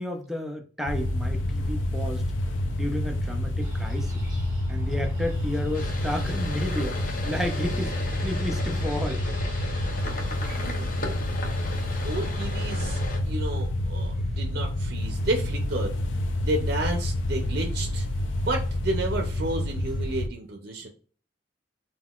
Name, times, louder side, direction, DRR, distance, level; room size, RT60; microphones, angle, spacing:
voice 1, 0.0-2.2 2.7-4.3 4.7-9.2, left 1 dB, ahead, 3 dB, 0.4 m, -32 dB
sound 1, 0.9-20.3, left 1 dB, 90° left, 0.4 m, -28 dB
sound 2, 3.6-10.6, right 1 dB, 25° right, 1.1 m, -44 dB
sound 3, 5.7-13.2, left 2 dB, 50° left, 0.6 m, -36 dB
voice 2, 12.0-16.0 16.4-18.1 18.4-20.9, right 2 dB, 55° right, 3 dB, 0.5 m, -31 dB
3.7 x 2.2 x 2.3 m, 0.41 s
head